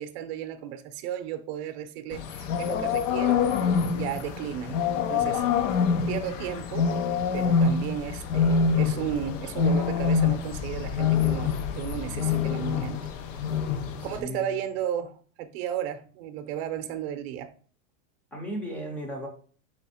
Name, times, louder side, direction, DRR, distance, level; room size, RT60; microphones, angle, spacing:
voice 1, 0.0-5.4 6.1-6.9 7.3-13.0 14.0-17.5, right 10 dB, 55° right, 0.6 m, -34 dB
sound 1, 2.1-14.2, left 6 dB, 80° left, 0.7 m, -26 dB
voice 2, 5.1-5.6 14.2-14.6 18.3-19.3, equal, 5° left, 0.5 m, -36 dB
4.4 x 2.9 x 4.2 m
supercardioid pair, 170°, 37 cm